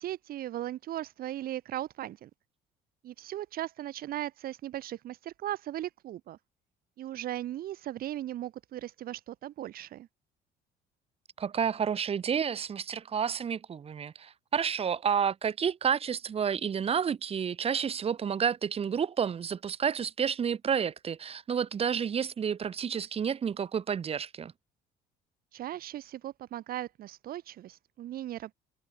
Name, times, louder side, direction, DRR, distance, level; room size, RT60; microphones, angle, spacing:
voice 1, 0.0-2.3 3.0-6.4 7.0-10.1 25.5-28.5, right 13 dB, 60° right, 1.0 m, -38 dB
voice 2, 11.4-24.5, right 7 dB, 35° right, 1.1 m, -30 dB
cardioid pair, 110°, 17 cm